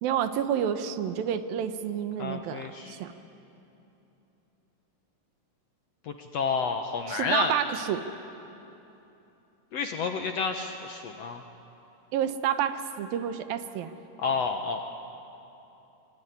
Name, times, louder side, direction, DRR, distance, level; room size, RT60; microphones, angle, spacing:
voice 1, 0.0-3.2 7.1-8.1 12.1-13.9, right 9 dB, 85° right, 10 dB, 2.8 m, -29 dB
voice 2, 2.2-3.0 6.1-7.5 9.7-11.4 14.2-14.9, left 5 dB, 70° left, 5 dB, 1.6 m, -30 dB
24.0 x 23.5 x 9.6 m, 2.9 s
omnidirectional pair, 4.0 m